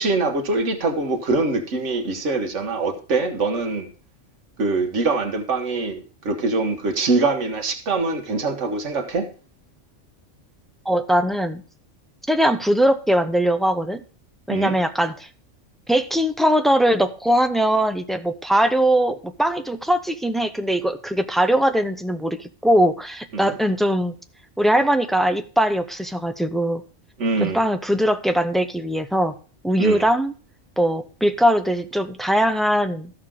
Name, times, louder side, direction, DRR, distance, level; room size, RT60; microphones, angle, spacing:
voice 1, 0.0-3.9 4.6-9.3 14.5-14.8 23.3-23.6 27.2-27.6 29.8-30.0, right 3 dB, 80° right, 1.6 m, -23 dB
voice 2, 10.9-11.6 12.3-14.0 14.5-15.3 15.9-24.1 24.6-26.8 27.4-29.3 29.6-30.3 30.8-33.1, equal, ahead, 0.4 m, -21 dB
13.5 x 6.6 x 3.6 m
omnidirectional pair, 1.2 m